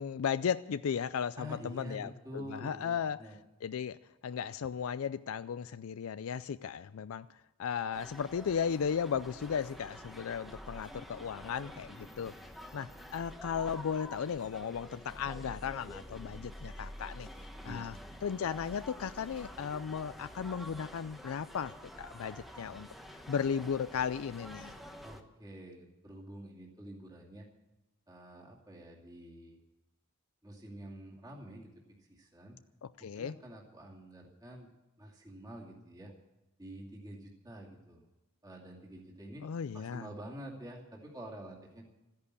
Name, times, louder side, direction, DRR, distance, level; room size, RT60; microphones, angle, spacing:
voice 1, 0.0-3.2 3.6-4.0 4.2-12.3 12.7-17.3 17.6-18.0 18.2-21.7 22.0-22.9 23.3-24.7 32.8-33.3 39.4-40.1, left 7 dB, 75° left, 14 dB, 0.4 m, -35 dB
voice 2, 1.4-3.4 17.6-17.9 25.0-27.5 28.1-29.6 30.4-31.7 32.0-32.6 33.1-34.7 35.0-36.1 36.6-38.1 38.4-39.4 39.7-41.8, equal, 20° right, -3 dB, 2.4 m, -48 dB
sound 1, 7.9-25.2, equal, ahead, 1.1 m, -48 dB
14.0 x 10.5 x 8.3 m, 1.0 s
head